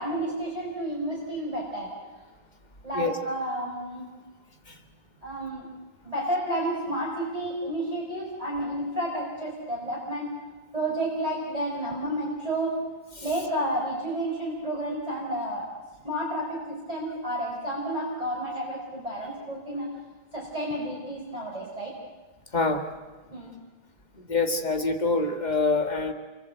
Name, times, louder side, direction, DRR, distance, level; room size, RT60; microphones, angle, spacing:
voice 1, 0.0-1.9 2.8-4.1 5.2-5.7 6.0-10.4 10.7-12.8 13.2-15.7 16.0-19.9 20.3-21.9 23.3-23.6, right 1 dB, 10° right, -4 dB, 4.7 m, -31 dB
voice 2, 24.3-26.1, left 3 dB, 25° left, 4 dB, 1.0 m, -25 dB
29.5 x 24.0 x 8.0 m, 1.3 s
omnidirectional pair, 3.8 m